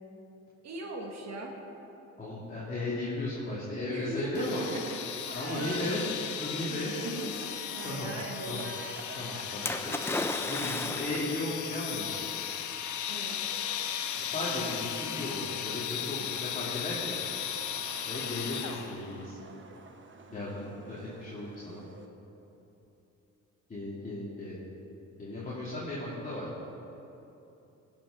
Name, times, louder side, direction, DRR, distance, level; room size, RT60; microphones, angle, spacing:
voice 1, 0.6-1.5 3.9-6.1 6.7-8.7 13.1-13.4 20.3-20.4, right 2 dB, 60° right, 0 dB, 1.7 m, -39 dB
voice 2, 2.2-4.6 5.3-6.0 6.4-7.0 7.8-8.1 8.5-8.6 9.2-10.2 10.5-12.3 14.3-17.2 18.1-19.4 20.3-21.8 23.7-24.6 25.2-26.5, left 2 dB, 25° left, -8 dB, 2.9 m, -36 dB
sound 1, 4.3-19.1, left 10 dB, 75° left, 0.8 m, -36 dB
Livestock farm animals working animals, 5.3-22.1, right 3 dB, 40° right, 1.1 m, -49 dB
Splash splatter, 9.6-11.4 12.4-12.5, left 1 dB, 10° left, 0.7 m, -34 dB
15.5 x 6.2 x 5.9 m, 3.0 s
cardioid pair, 90°, 30 cm